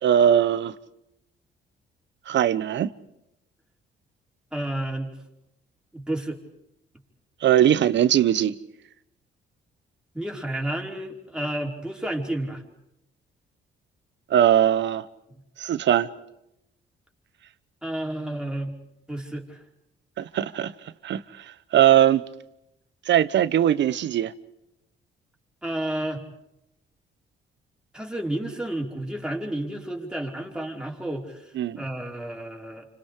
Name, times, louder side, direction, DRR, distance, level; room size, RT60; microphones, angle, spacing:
voice 1, 0.0-0.7 2.3-2.9 7.4-8.5 14.3-15.0 15.6-16.1 20.2-20.7 21.0-21.4 21.7-22.2 23.1-24.3 31.5-31.8, right 10 dB, 65° right, 1.1 m, -20 dB
voice 2, 4.5-5.1 5.9-6.4 10.1-12.6 17.8-18.8 19.1-19.6 25.6-26.2 27.9-32.9, right 1 dB, 5° right, 4.8 m, -31 dB
30.0 x 26.0 x 5.0 m
cardioid pair, 90°, 20 cm